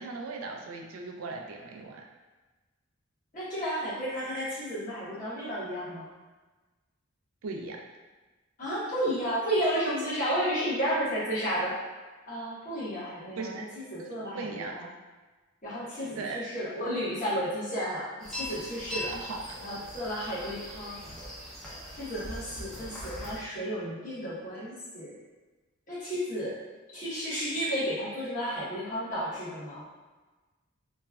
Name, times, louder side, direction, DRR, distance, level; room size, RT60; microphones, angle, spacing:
voice 1, 0.0-2.0 7.4-7.8 13.4-13.7 14.0-14.8 16.2-16.4 19.1-19.4, right 3 dB, 85° right, 2 dB, 0.4 m, -38 dB
voice 2, 3.3-6.1 8.6-11.8 12.3-14.9 15.6-19.1 19.6-21.0 22.0-25.1 25.9-26.6 26.9-29.9, equal, 40° left, -10 dB, 1.1 m, -32 dB
sound 1, 18.2-23.4, left 1 dB, ahead, 0.5 m, -40 dB
3.0 x 2.2 x 2.3 m, 1.2 s
head